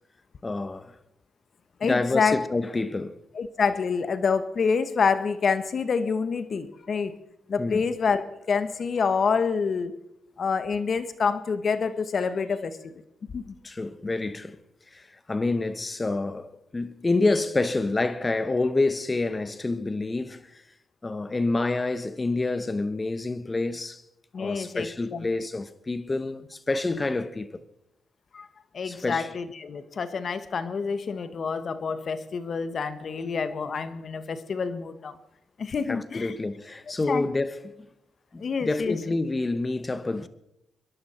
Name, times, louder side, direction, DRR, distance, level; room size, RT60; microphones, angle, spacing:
voice 1, 0.4-1.0 1.8-3.2 7.6-7.9 13.6-14.6 14.9-20.4 21.0-24.0 24.4-27.6 28.8-29.3 35.9-37.9 38.3-40.3, left 2 dB, 25° left, 1.1 m, -28 dB
voice 2, 1.8-2.4 3.3-7.1 7.5-9.9 10.4-12.9 13.3-13.5 24.3-25.3 28.3-28.5 28.7-35.1 35.6-36.3 37.1-37.3 38.4-39.0, left 5 dB, 55° left, 1.3 m, -27 dB
24.5 x 11.5 x 4.4 m
cardioid pair, 70°, 0 cm